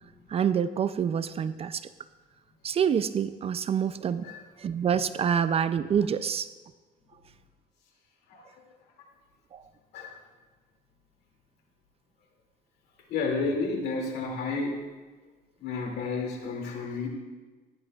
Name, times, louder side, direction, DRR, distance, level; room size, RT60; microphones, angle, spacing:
voice 1, 0.3-1.8 2.6-4.3 4.6-6.5 9.5-9.6, right 8 dB, 35° right, 14 dB, 0.4 m, -27 dB
voice 2, 13.1-14.7 15.6-17.1, left 4 dB, 75° left, 1 dB, 2.4 m, -31 dB
15.0 x 11.0 x 2.3 m, 1.3 s
cardioid pair, 110°, 17 cm